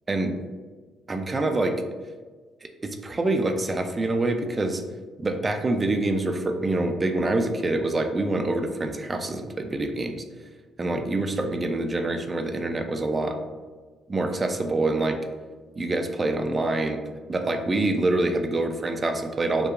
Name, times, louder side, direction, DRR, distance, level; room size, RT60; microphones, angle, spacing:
voice 1, 0.1-0.4 1.1-1.8 2.8-4.8 5.2-10.2 10.8-13.4 14.1-15.2 15.8-17.0 17.3-19.7, right 2 dB, 30° right, 5 dB, 0.3 m, -26 dB
2.7 x 2.3 x 2.3 m, 1.4 s
supercardioid pair, 70°, 0 cm